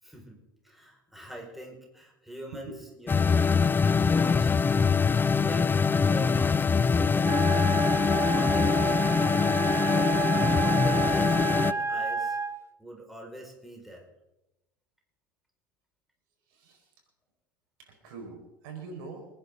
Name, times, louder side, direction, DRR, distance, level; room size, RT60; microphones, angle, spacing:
voice 1, 0.0-4.5 5.4-7.7 8.2-9.5 9.8-10.2 10.8-12.4 12.8-14.1, right 1 dB, ahead, 0 dB, 4.9 m, -44 dB
sound 1, 3.1-11.7, left 5 dB, 20° left, 0.6 m, -23 dB
Wind instrument woodwind instrument, 7.2-12.6, right 6 dB, 20° right, 1.2 m, -30 dB
voice 2, 16.5-16.9 17.8-19.3, right 4 dB, 65° right, 2 dB, 4.7 m, -43 dB
27.5 x 10.5 x 3.7 m, 0.94 s
hypercardioid pair, 75°, 11 cm